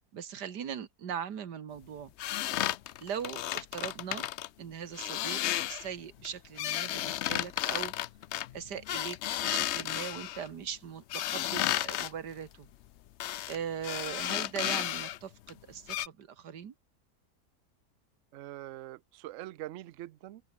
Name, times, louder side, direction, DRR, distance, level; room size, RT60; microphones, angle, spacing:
voice 1, 0.0-2.1 3.0-4.3 4.6-5.4 5.7-7.9 8.5-12.7 13.5-16.7, right 8 dB, 90° right, 2.1 m, -40 dB
sound 1, 2.2-4.5 4.9-5.9 6.2-10.5 11.1-12.1 13.2-13.6 13.8-15.2 15.5-15.6 15.9-16.1, left 13 dB, 90° left, 0.6 m, -33 dB
voice 2, 18.3-20.4, right 15 dB, 70° right, 0.7 m, -43 dB
open air
omnidirectional pair, 1.7 m